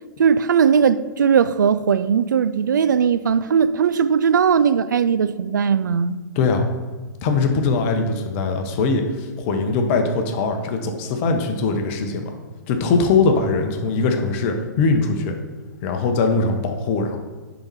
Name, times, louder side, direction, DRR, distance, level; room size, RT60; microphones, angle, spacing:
voice 1, 0.2-6.2, right 7 dB, 70° right, 0.4 m, -18 dB
voice 2, 6.3-6.7 7.2-12.3 12.7-15.3 15.8-17.2, left 4 dB, 40° left, 1.1 m, -21 dB
10.5 x 4.1 x 4.8 m
figure-of-eight pair, 110°, 10 cm